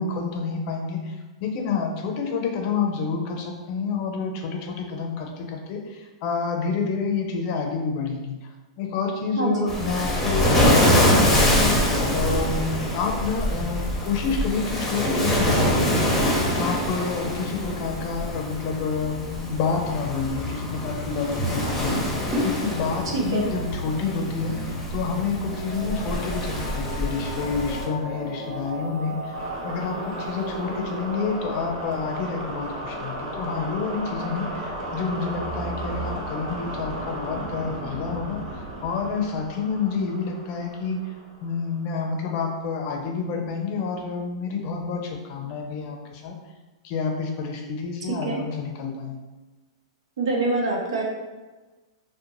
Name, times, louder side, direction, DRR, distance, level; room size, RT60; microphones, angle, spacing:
voice 1, 0.0-16.3 16.6-24.6 24.9-29.4 29.6-41.1 41.4-46.3 46.8-49.2, left 5 dB, 45° left, 2 dB, 0.5 m, -29 dB
voice 2, 9.4-9.7 23.1-23.5 48.2-48.4 50.2-51.0, right 3 dB, 80° right, -1 dB, 0.8 m, -25 dB
Waves surf, 9.7-27.8, left 1 dB, 10° left, 0.7 m, -25 dB
sound 1, 23.2-41.7, right 1 dB, 50° right, 1.0 m, -34 dB
2.5 x 2.1 x 3.0 m, 1.2 s
hypercardioid pair, 125°, 3 cm